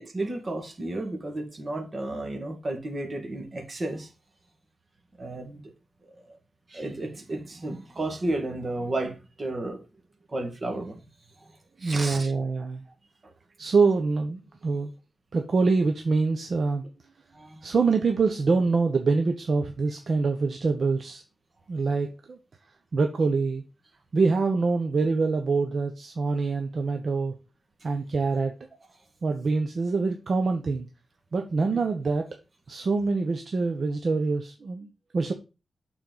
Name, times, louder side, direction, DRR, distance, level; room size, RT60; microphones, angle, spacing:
voice 1, 0.0-4.1 5.2-5.6 6.1-6.4 6.7-9.8 10.3-11.1 11.4-11.5 11.8-12.3 13.2-13.3 17.3-17.7, right 2 dB, 30° right, 1.7 m, -33 dB
voice 2, 11.8-12.8 13.6-14.9 15.3-16.8 17.6-21.2 21.7-22.4 22.9-23.6 24.1-27.3 27.8-28.5 29.2-30.9 31.3-32.3 32.7-35.3, right 4 dB, 50° right, 0.8 m, -25 dB
6.8 x 4.4 x 3.9 m
wide cardioid pair, 170°, 0 cm